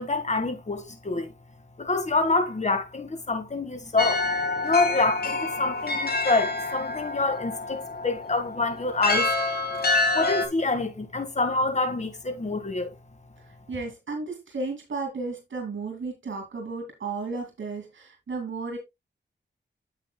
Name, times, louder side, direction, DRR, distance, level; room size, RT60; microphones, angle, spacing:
voice 1, 0.0-1.3 1.8-4.3 4.6-9.3 10.1-12.9, left 3 dB, 35° left, 1.9 m, -26 dB
sound 1, 4.0-10.5, left 3 dB, 55° left, 2.1 m, -27 dB
voice 2, 13.4-18.8, right 3 dB, 85° right, 2.5 m, -34 dB
9.4 x 7.7 x 2.3 m
wide cardioid pair, 70°, 19 cm